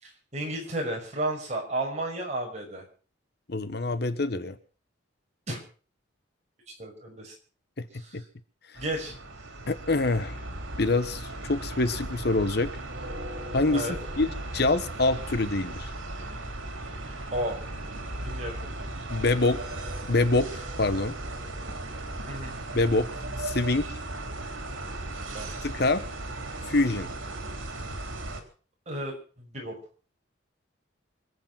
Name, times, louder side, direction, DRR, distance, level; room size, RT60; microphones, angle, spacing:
voice 1, 0.0-2.8 5.5-5.6 6.8-7.3 8.0-8.2 8.8-9.1 13.7-13.9 17.3-17.6 18.2-18.6 22.3-22.6 25.3-25.6 28.9-29.7, right 1 dB, 35° right, 0 dB, 5.8 m, -33 dB
voice 2, 3.5-4.6 7.8-7.9 8.1-8.2 9.7-10.4 10.8-12.7 13.5-15.9 19.1-19.6 20.1-21.1 22.7-23.1 23.4-23.9 25.6-26.0 26.7-27.1, left 2 dB, 55° left, 12 dB, 1.0 m, -25 dB
sound 1, 8.8-28.4, right 2 dB, 80° right, 3.5 m, -37 dB
25.5 x 8.5 x 5.9 m, 0.41 s
head